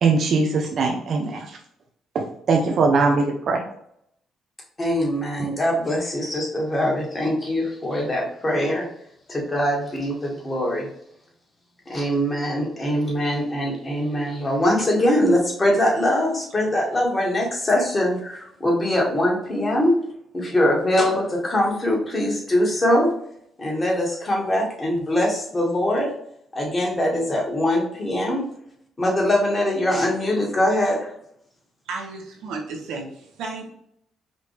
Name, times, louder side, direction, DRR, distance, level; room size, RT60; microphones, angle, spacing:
voice 1, 0.0-1.6 2.1-3.6, right 4 dB, 60° right, 1 dB, 0.7 m, -21 dB
voice 2, 4.8-8.8 9.3-10.9 11.9-19.9 20.3-23.1 23.6-26.1 26.5-28.4 29.0-31.0, left 1 dB, 25° left, -2 dB, 1.7 m, -22 dB
voice 3, 31.9-33.7, right 3 dB, 85° right, 0 dB, 1.2 m, -33 dB
5.0 x 2.7 x 3.3 m, 0.71 s
cardioid pair, 90°, 0 cm